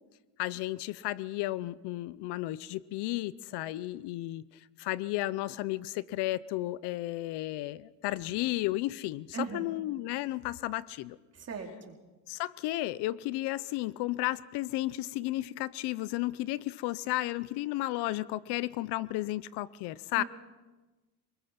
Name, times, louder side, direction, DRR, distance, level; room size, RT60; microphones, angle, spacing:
voice 1, 0.4-4.4 4.8-11.2 12.3-20.2, left 17 dB, 85° left, 19 dB, 0.8 m, -33 dB
voice 2, 9.3-9.7 11.3-12.0 20.2-20.3, right 5 dB, 40° right, 2 dB, 4.2 m, -38 dB
27.5 x 21.0 x 6.0 m, 1.2 s
cardioid pair, 105°, 39 cm